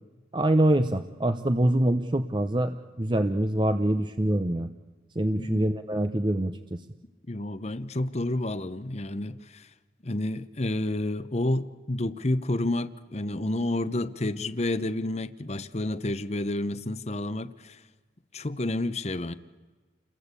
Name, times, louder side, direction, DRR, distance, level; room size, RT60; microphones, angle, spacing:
voice 1, 0.3-4.7 5.2-6.6, right 1 dB, 25° right, 9 dB, 0.8 m, -25 dB
voice 2, 5.4-5.7 7.3-9.7 10.0-17.8 18.3-19.3, left 1 dB, 35° left, 12 dB, 0.9 m, -30 dB
29.5 x 21.5 x 8.3 m, 1.3 s
head